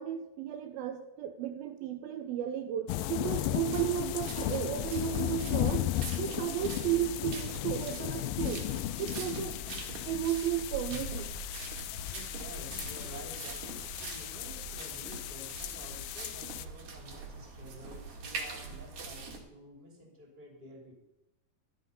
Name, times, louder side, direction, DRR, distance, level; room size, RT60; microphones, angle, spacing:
voice 1, 0.0-5.9 6.2-8.7 9.0-9.6 10.1-11.3, right 10 dB, 80° right, 6 dB, 2.4 m, -34 dB
sound 1, 2.9-16.7, left 15 dB, 85° left, 2.1 m, -36 dB
sound 2, 3.3-19.4, right 4 dB, 50° right, 3.1 m, -44 dB
voice 2, 12.0-20.9, equal, 15° right, 0 dB, 2.9 m, -50 dB
13.0 x 11.0 x 5.4 m, 0.93 s
omnidirectional pair, 4.7 m